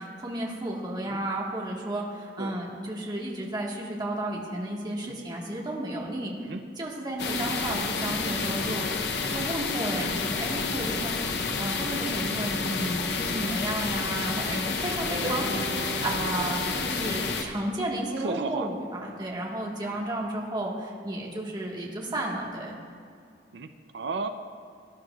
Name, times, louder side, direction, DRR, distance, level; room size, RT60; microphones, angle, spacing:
voice 1, 0.0-6.4 6.8-8.8 9.3-11.1 11.6-22.8, right 1 dB, 25° right, -2 dB, 1.5 m, -32 dB
sound 1, 7.2-17.4, left 4 dB, 70° left, 0.8 m, -30 dB
voice 2, 8.3-9.1 9.8-10.2 11.5-11.6 15.1-15.3 18.2-18.7 19.1-19.2 19.9-20.1 23.5-24.3, right 4 dB, 75° right, 8 dB, 0.5 m, -37 dB
sound 2, 15.1-19.3, right 2 dB, 40° right, 2.1 m, -38 dB
18.5 x 10.5 x 2.4 m, 2.3 s
head